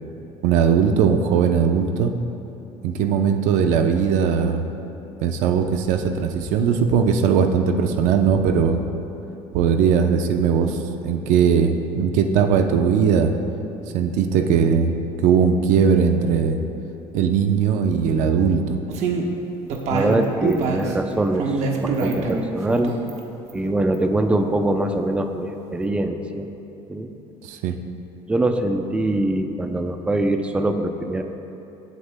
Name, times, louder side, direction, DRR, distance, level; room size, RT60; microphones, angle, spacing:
voice 1, 0.4-2.1 2.8-4.6 5.2-8.8 9.5-10.8 11.0-13.3 13.9-14.9 15.2-16.6 17.1-18.8 27.4-27.8, right 7 dB, 85° right, 6 dB, 0.7 m, -19 dB
sound 1, 18.9-19.2 19.7-20.9 21.4-22.4 22.7-23.2 23.5-23.6 23.9-24.0, right 4 dB, 65° right, 1.1 m, -24 dB
voice 2, 19.9-22.9 23.5-26.5 26.9-27.1 28.3-31.2, right 1 dB, 10° right, 5 dB, 0.5 m, -23 dB
22.5 x 8.2 x 2.2 m, 2.9 s
cardioid pair, 130°, 12 cm